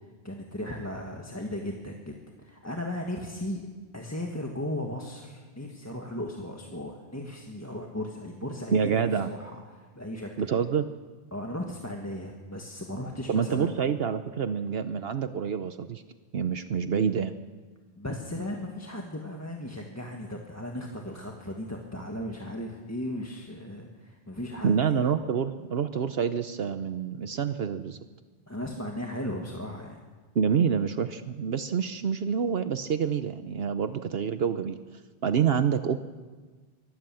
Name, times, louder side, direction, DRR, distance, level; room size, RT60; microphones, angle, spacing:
voice 1, 0.2-2.1 2.4-3.7 3.9-8.8 9.2-10.3 11.3-13.7 18.0-24.9 28.5-30.0, left 1 dB, 15° left, 1 dB, 1.7 m, -36 dB
voice 2, 8.7-9.3 10.4-10.9 13.3-16.0 16.3-17.3 24.6-28.0 30.3-34.8 35.2-36.0, right 7 dB, 70° right, 10 dB, 1.0 m, -27 dB
24.5 x 14.5 x 7.7 m, 1.4 s
omnidirectional pair, 1.1 m